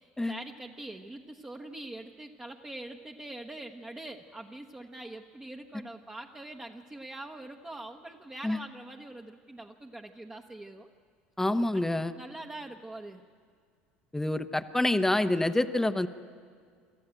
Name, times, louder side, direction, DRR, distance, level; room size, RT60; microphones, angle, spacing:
voice 1, 0.0-10.9 11.7-11.9 12.2-13.2, right 2 dB, 15° right, 1 dB, 1.1 m, -44 dB
voice 2, 11.4-12.1 14.1-16.1, left 1 dB, 5° left, 11 dB, 0.9 m, -27 dB
26.5 x 13.5 x 8.9 m, 2.1 s
hypercardioid pair, 70°, 6 cm